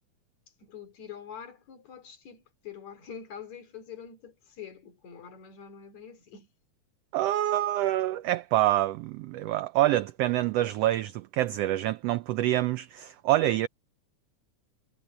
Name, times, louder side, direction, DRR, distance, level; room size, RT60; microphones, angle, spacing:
voice 1, 0.6-6.5, left 7 dB, 70° left, 4.3 m, -45 dB
voice 2, 7.1-13.7, right 14 dB, 85° right, 1.4 m, -26 dB
omnidirectional pair, 3.4 m